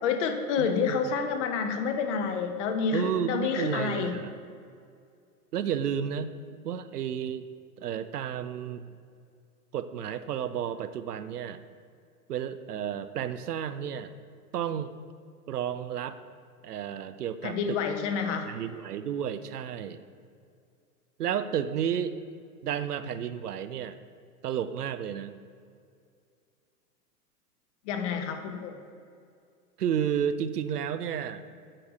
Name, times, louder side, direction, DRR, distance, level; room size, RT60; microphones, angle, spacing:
voice 1, 0.0-4.2 17.4-18.5 27.9-28.8, left 6 dB, 50° left, 7 dB, 1.1 m, -29 dB
voice 2, 0.6-1.0 2.9-4.3 5.5-6.3 6.6-7.5 7.8-8.9 9.7-11.6 12.3-14.1 14.5-14.9 15.5-16.2 16.6-17.8 18.2-20.0 21.2-22.1 22.6-24.0 24.4-25.4 29.8-31.5, right 9 dB, 80° right, 12 dB, 0.6 m, -32 dB
8.7 x 4.9 x 6.1 m, 2.3 s
hypercardioid pair, 110°, 46 cm